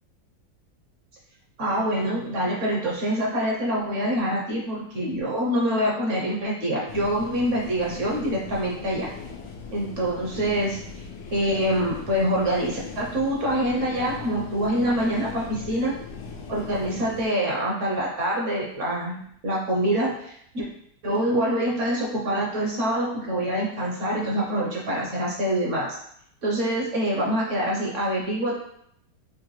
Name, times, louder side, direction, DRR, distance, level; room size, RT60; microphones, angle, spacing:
voice 1, 1.6-9.1 9.7-10.8 11.3-15.9 16.5-19.2 19.4-20.7 21.0-26.0 26.4-28.6, equal, 55° right, -3 dB, 0.9 m, -25 dB
sound 1, 6.9-17.3, left 5 dB, 85° left, 1.3 m, -39 dB
5.3 x 2.2 x 3.1 m, 0.70 s
omnidirectional pair, 2.0 m